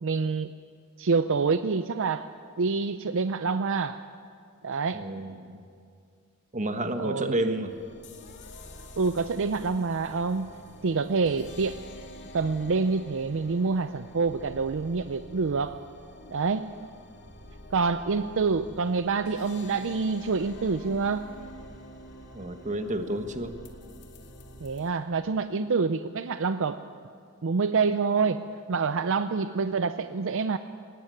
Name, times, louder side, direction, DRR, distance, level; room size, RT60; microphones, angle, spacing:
voice 1, 0.0-0.5 1.0-2.3 2.6-4.0 4.6-5.0 7.0-7.4 9.0-10.6 10.8-11.8 12.3-15.8 16.3-16.7 17.7-21.3 24.6-26.8 27.4-28.4 28.7-30.6, right 4 dB, 60° right, 11 dB, 0.6 m, -27 dB
voice 2, 4.9-5.6 6.5-7.7 22.3-23.5, right 1 dB, 35° right, 7 dB, 1.5 m, -30 dB
sound 1, 7.7-24.9, left 1 dB, 55° left, 2.3 m, -47 dB
20.5 x 18.0 x 9.2 m, 2.3 s
head